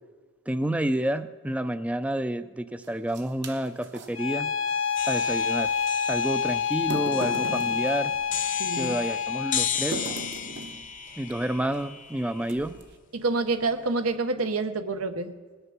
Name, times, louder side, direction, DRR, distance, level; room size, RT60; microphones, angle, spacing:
voice 1, 0.5-4.5 5.1-5.7 6.1-8.1 8.8-10.1 11.2-12.7, right 1 dB, 5° right, 12 dB, 0.4 m, -29 dB
sound 1, 2.8-4.1 5.8-5.9 6.7-8.9 9.9-10.9 11.7-11.9 12.4-12.9, right 2 dB, 55° right, 1.0 m, -37 dB
Bowed string instrument, 4.1-9.8, left 7 dB, 70° left, 0.9 m, -27 dB
sound 2, 5.0-12.9, left 8 dB, 40° left, 0.8 m, -35 dB
voice 2, 8.6-8.9 13.1-15.3, right 3 dB, 80° right, 8 dB, 0.8 m, -27 dB
19.5 x 6.7 x 6.0 m, 1.5 s
head